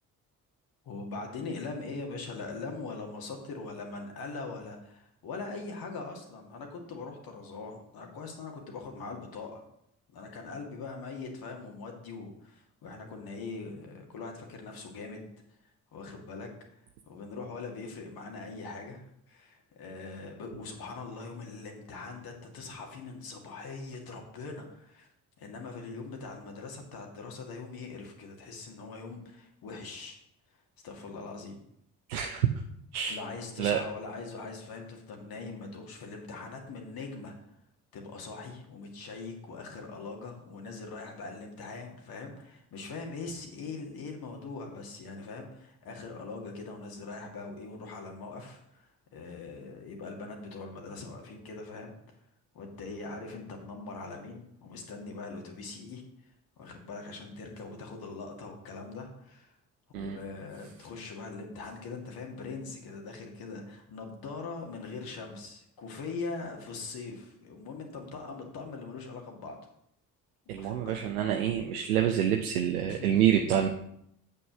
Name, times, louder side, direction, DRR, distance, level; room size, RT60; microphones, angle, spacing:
voice 1, 0.8-9.6 10.1-15.3 15.9-16.5 17.1-25.1 25.4-30.2 30.8-31.6 33.1-37.3 37.9-52.0 52.5-56.0 56.6-59.5 59.9-69.6 70.5-71.0 72.9-73.1, left 3 dB, 50° left, 2 dB, 2.0 m, -41 dB
voice 2, 32.1-32.5 32.9-33.2 33.6-33.8 59.9-60.2 70.5-73.7, right 10 dB, 75° right, 4 dB, 0.7 m, -27 dB
8.4 x 5.4 x 6.1 m, 0.75 s
figure-of-eight pair, 45°, 45 cm